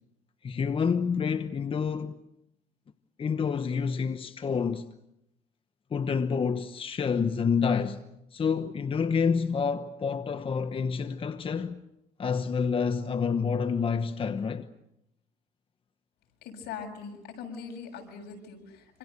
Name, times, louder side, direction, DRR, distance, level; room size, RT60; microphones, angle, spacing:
voice 1, 0.4-2.2 3.2-4.9 5.9-8.0 8.3-11.8 12.2-14.7, left 6 dB, 30° left, 1.1 m, -28 dB
voice 2, 16.4-19.0, left 6 dB, 75° left, 7.3 m, -41 dB
27.0 x 26.5 x 6.8 m
cardioid pair, 110°, 17 cm